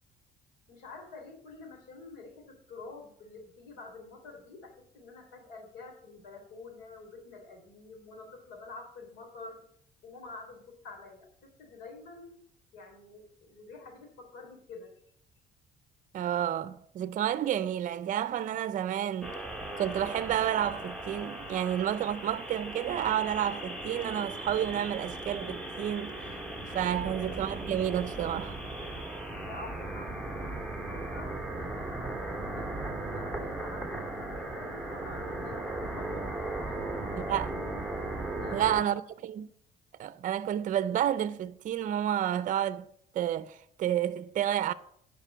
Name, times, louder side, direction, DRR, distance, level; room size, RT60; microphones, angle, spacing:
voice 1, 0.7-9.6 10.0-12.4 12.7-14.9 26.9-27.2 29.4-30.6 30.9-31.9 32.2-33.9 34.2-36.3 36.6-37.5 38.3-38.9, left 3 dB, 85° left, 3.3 m, -48 dB
voice 2, 16.1-19.4 19.8-26.4 26.7-28.6 37.2-37.6 38.5-39.5 39.9-42.9 43.1-44.7, right 10 dB, 50° right, 0.5 m, -30 dB
sound 1, 19.2-38.8, right 2 dB, 5° left, 1.7 m, -37 dB
9.8 x 5.2 x 7.2 m
cardioid pair, 110°, 17 cm